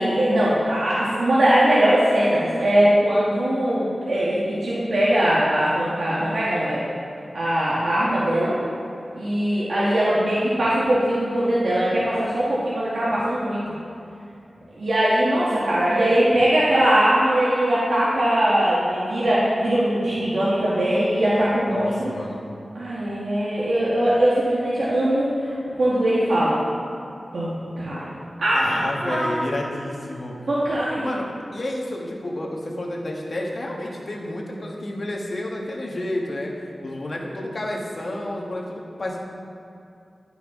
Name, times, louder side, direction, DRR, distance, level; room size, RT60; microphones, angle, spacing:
voice 1, 0.0-6.8 7.3-8.5 9.2-13.6 14.8-22.1 22.7-26.6 27.3-28.1 28.4-29.2 30.5-31.1, right 1 dB, 80° right, -9 dB, 1.3 m, -21 dB
voice 2, 21.7-22.4 28.5-30.3 30.9-36.5 36.8-39.2, left 1 dB, 55° left, -2 dB, 1.4 m, -30 dB
11.0 x 5.8 x 3.6 m, 2.7 s
wide cardioid pair, 70°, 0 cm